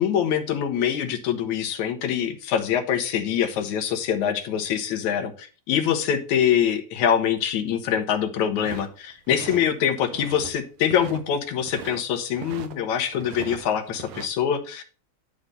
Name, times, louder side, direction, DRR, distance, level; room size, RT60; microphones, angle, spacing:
voice 1, 0.0-14.8, left 9 dB, 80° left, 7 dB, 2.5 m, -24 dB
sound 1, 8.6-9.6 10.0-10.5 10.8-12.0 12.3-12.7 13.1-14.3, right 7 dB, 80° right, 2.3 m, -39 dB
11.5 x 3.8 x 6.7 m, 0.36 s
omnidirectional pair, 3.3 m